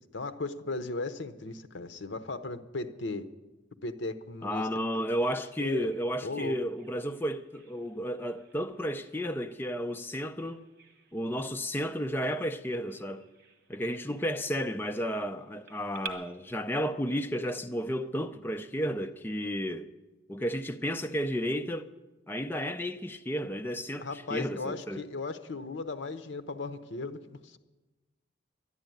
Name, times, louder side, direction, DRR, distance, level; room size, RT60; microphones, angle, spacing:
voice 1, 0.1-3.3 3.8-4.7 5.6-5.9 6.2-6.6 24.0-27.6, left 3 dB, 65° left, 0.8 m, -36 dB
voice 2, 4.4-10.6 11.1-13.3 13.7-19.9 20.3-21.9 22.3-25.0, equal, 10° left, 0.4 m, -32 dB
Bird vocalization bird call bird song, 4.9-16.1, right 6 dB, 50° right, 1.6 m, -53 dB
11.5 x 11.0 x 9.2 m
head